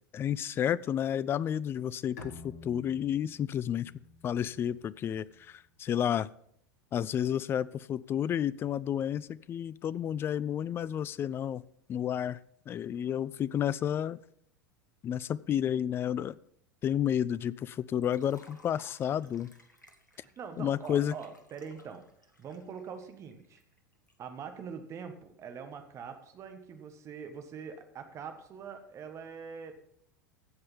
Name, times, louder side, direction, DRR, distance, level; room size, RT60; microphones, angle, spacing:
voice 1, 0.1-3.9 4.2-6.3 6.9-11.6 11.9-12.4 12.7-14.2 15.0-16.4 16.8-19.5 20.6-21.2, left 9 dB, 25° left, 20 dB, 0.3 m, -31 dB
Bowed string instrument, 2.2-5.6, left 3 dB, 60° left, 1.6 m, -51 dB
Liquid, 18.0-24.1, left 1 dB, 85° left, 1.3 m, -59 dB
voice 2, 20.1-22.0 22.4-23.6 24.2-29.8, right 6 dB, 30° right, 7 dB, 1.4 m, -43 dB
16.0 x 5.4 x 5.5 m, 0.69 s
figure-of-eight pair, 80°, 10 cm